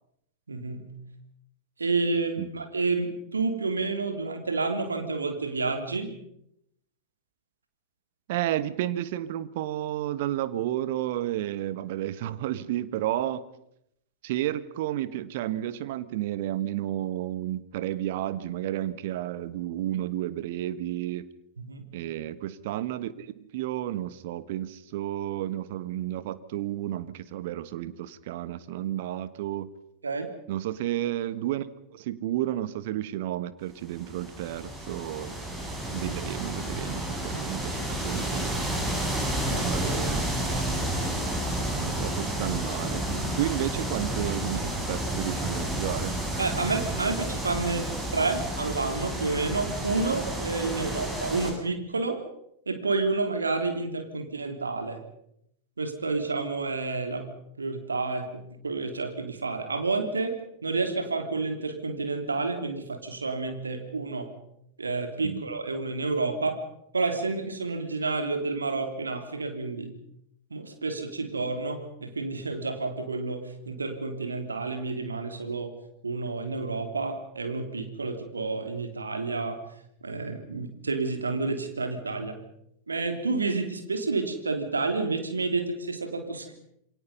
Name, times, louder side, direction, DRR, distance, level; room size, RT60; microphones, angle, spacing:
voice 1, 0.5-0.9 1.8-6.1 21.6-21.8 30.0-30.3 36.0-36.1 39.5-39.7 44.3-44.4 46.4-52.2 52.6-55.0 55.8-57.3 57.6-60.3 60.6-64.3 64.8-66.6 66.9-69.9 70.5-75.7 76.0-79.6 80.0-82.4 82.9-86.5, right 3 dB, 75° right, 6 dB, 3.3 m, -30 dB
voice 2, 8.3-13.4 14.2-21.3 21.9-29.7 30.5-35.4 35.9-38.5 39.5-40.3 41.7-46.1 65.2-65.4, right 13 dB, 50° right, 14 dB, 1.4 m, -32 dB
sound 1, 33.9-51.5, right 1 dB, 15° right, 7.8 m, -31 dB
28.0 x 24.0 x 5.5 m, 0.76 s
figure-of-eight pair, 90°, 0 cm